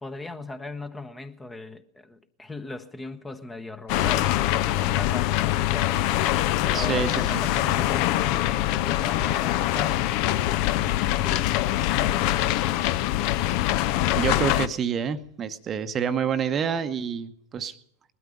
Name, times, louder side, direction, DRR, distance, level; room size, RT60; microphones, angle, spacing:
voice 1, 0.0-5.9 6.6-10.1 10.8-11.5, left 2 dB, 10° left, 0.9 m, -39 dB
sound 1, 3.9-14.7, left 14 dB, 45° left, 0.6 m, -24 dB
voice 2, 6.7-7.4 13.8-17.7, right 7 dB, 25° right, 0.9 m, -28 dB
20.0 x 12.5 x 5.4 m
figure-of-eight pair, 90°, 0 cm